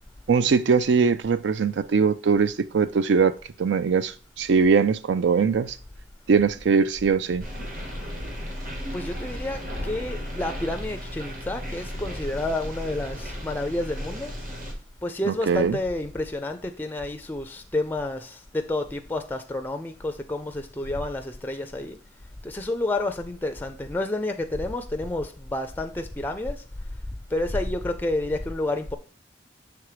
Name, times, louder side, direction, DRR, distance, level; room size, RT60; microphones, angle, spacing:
voice 1, 0.3-5.8 6.3-7.5 15.3-15.8, right 5 dB, 80° right, 0.4 m, -21 dB
sound 1, 7.4-14.7, equal, 45° right, 1.4 m, -35 dB
voice 2, 8.9-14.3 15.0-22.0 22.4-26.6 27.3-29.0, left 2 dB, 10° left, 0.4 m, -29 dB
6.0 x 3.5 x 4.9 m
head